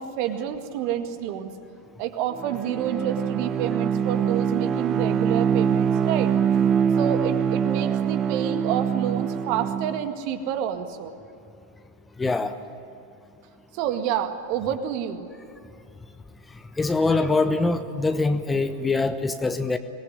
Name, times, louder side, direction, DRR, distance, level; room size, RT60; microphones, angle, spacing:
voice 1, 0.0-1.5 2.0-6.3 7.0-11.1 13.7-15.3, right 9 dB, 45° right, 7 dB, 2.0 m, -28 dB
Bowed string instrument, 2.3-10.1, right 7 dB, 30° right, 0.7 m, -24 dB
voice 2, 12.2-12.6 16.8-19.8, left 3 dB, 10° left, 9 dB, 1.1 m, -23 dB
25.5 x 20.0 x 9.9 m, 2.7 s
figure-of-eight pair, 90°, 0 cm